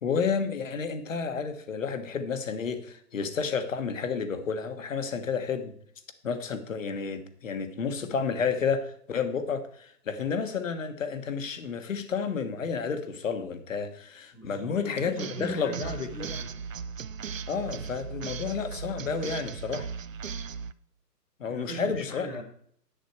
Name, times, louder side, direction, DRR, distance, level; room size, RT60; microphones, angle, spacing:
voice 1, 0.0-5.7 6.2-16.4 17.5-19.9 21.4-22.4, left 5 dB, 50° left, 9 dB, 1.5 m, -31 dB
voice 2, 14.3-16.7 21.4-22.4, right 1 dB, 85° left, 3 dB, 3.7 m, -40 dB
sound 1, 15.0-20.7, right 6 dB, 55° right, 0.6 m, -37 dB
10.5 x 8.1 x 4.6 m, 0.62 s
hypercardioid pair, 155°, 49 cm